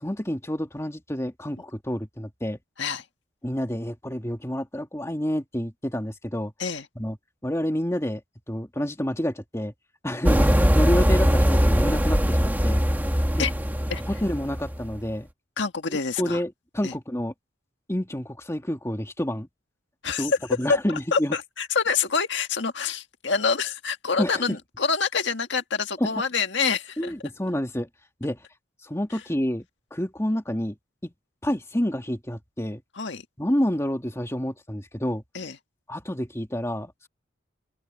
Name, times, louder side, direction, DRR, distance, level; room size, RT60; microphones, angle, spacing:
voice 1, 0.0-2.6 3.4-6.5 7.0-7.2 7.4-8.2 8.5-9.7 10.0-12.8 13.3-13.5 14.1-15.3 15.9-17.3 17.9-19.5 20.2-20.3 20.6-21.4 24.2-24.6 26.0-26.2 27.0-27.9 28.2-28.5 28.8-30.8 31.0-31.1 31.4-32.8 33.4-35.2 35.9-37.1, equal, 15° left, 2.2 m, -28 dB
sound 1, 10.2-15.0, equal, 10° right, 1.6 m, -21 dB
voice 2, 15.6-16.4 16.8-16.9 20.0-20.3 20.7-20.8 21.1-27.1 33.0-33.2 35.3-35.5, left 5 dB, 65° left, 1.9 m, -26 dB
open air
head